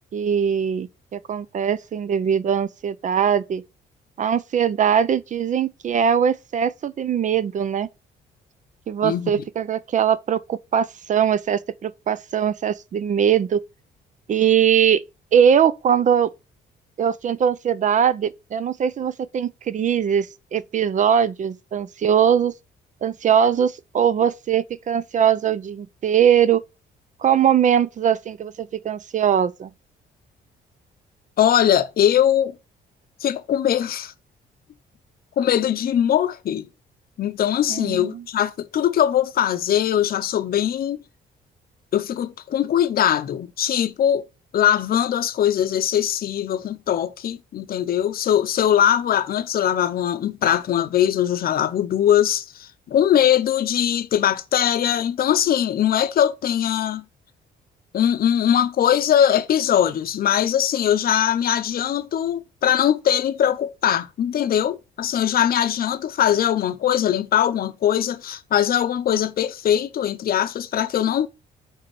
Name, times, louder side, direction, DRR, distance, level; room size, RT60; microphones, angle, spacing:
voice 1, 0.1-3.6 4.2-7.9 8.9-13.6 14.3-15.0 15.3-16.3 17.0-22.5 23.0-26.6 27.2-29.7 37.7-38.2, right 8 dB, 40° right, 0.4 m, -21 dB
voice 2, 9.0-9.4 31.4-32.5 33.2-34.1 35.4-36.7 37.2-41.0 41.9-44.3 44.5-57.0 57.9-71.3, left 10 dB, 55° left, 0.7 m, -21 dB
5.3 x 4.1 x 5.9 m
cardioid pair, 110°, 19 cm